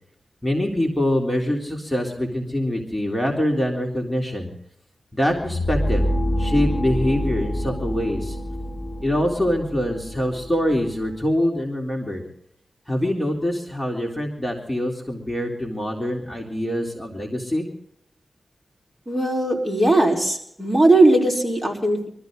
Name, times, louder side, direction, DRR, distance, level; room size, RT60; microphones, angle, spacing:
voice 1, 0.4-4.5 5.1-6.1 6.4-8.4 9.0-12.2 12.9-17.7, left 1 dB, 10° left, -1 dB, 3.6 m, -24 dB
sound 1, 5.3-11.2, equal, 30° left, 4.9 m, -27 dB
voice 2, 19.1-22.1, right 2 dB, 15° right, -1 dB, 4.4 m, -18 dB
24.5 x 14.0 x 3.9 m, 0.71 s
wide cardioid pair, 75°, 0 cm